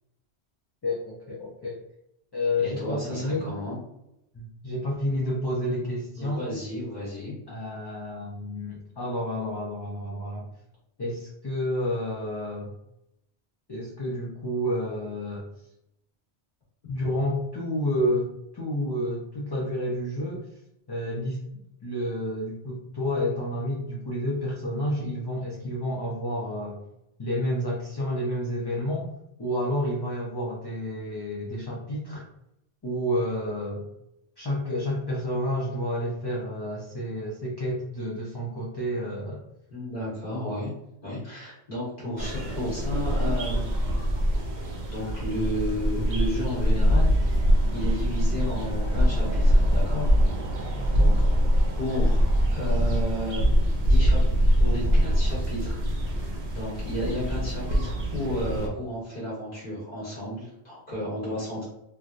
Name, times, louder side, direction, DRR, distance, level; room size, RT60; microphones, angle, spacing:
voice 1, 0.8-1.8 2.3-3.5 4.3-6.4 7.5-10.5 11.0-12.7 13.7-15.4 16.9-20.5 20.9-21.4 21.8-26.8 27.2-29.1 29.4-32.2 32.8-33.9 34.4-39.4 40.4-40.6 50.7-51.1, left 1 dB, 35° left, -5 dB, 0.4 m, -30 dB
voice 2, 2.6-3.8 6.2-7.4 39.7-40.7 41.0-43.7 44.9-47.4 47.7-50.2 50.5-50.7 50.9-51.1 51.8-53.5 53.8-61.6, left 1 dB, 50° left, -8 dB, 1.3 m, -33 dB
sound 1, 42.2-58.7, equal, 50° right, 0.7 m, -23 dB
3.2 x 2.6 x 2.4 m, 0.83 s
omnidirectional pair, 1.1 m